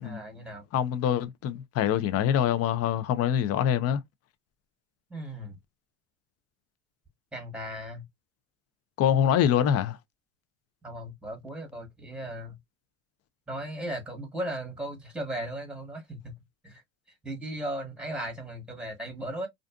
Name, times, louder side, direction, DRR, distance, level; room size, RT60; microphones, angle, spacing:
voice 1, 0.0-0.6 5.1-5.6 7.3-8.0 10.8-12.6 13.5-16.8 17.2-19.5, right 1 dB, 5° right, 1.2 m, -37 dB
voice 2, 0.7-4.0 9.0-10.0, left 9 dB, 45° left, 0.5 m, -25 dB
2.5 x 2.4 x 2.3 m
supercardioid pair, 95°, 35 cm